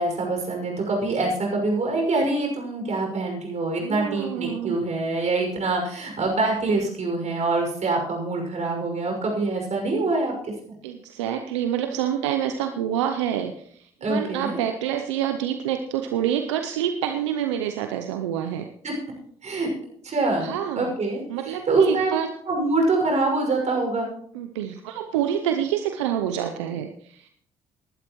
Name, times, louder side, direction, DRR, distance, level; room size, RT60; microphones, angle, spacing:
voice 1, 0.0-10.3 10.7-10.8 14.0-14.6 18.8-18.9 19.4-19.7 20.0-22.2 22.5-24.1, right 3 dB, 50° right, 1 dB, 5.9 m, -25 dB
voice 2, 3.8-4.8 10.8-18.7 20.4-20.9 21.3-22.3 24.3-27.3, right 10 dB, 85° right, 7 dB, 0.6 m, -27 dB
19.5 x 11.5 x 3.1 m, 0.64 s
hypercardioid pair, 50°, 15 cm